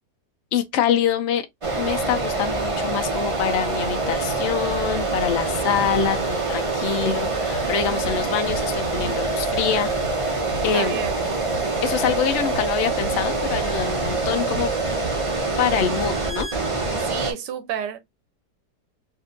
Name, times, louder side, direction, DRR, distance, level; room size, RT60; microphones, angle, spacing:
voice 1, 0.5-1.4 1.8-9.9 10.6-11.0 11.8-14.7 15.6-16.5, left 8 dB, 90° left, 0.6 m, -25 dB
sound 1, 1.6-17.3, right 3 dB, 60° right, 0.3 m, -25 dB
sound 2, 7.3-15.3, right 2 dB, 60° left, 0.9 m, -38 dB
voice 2, 10.5-11.2 17.0-18.0, right 9 dB, 90° right, 1.3 m, -30 dB
3.7 x 2.5 x 2.5 m
omnidirectional pair, 1.8 m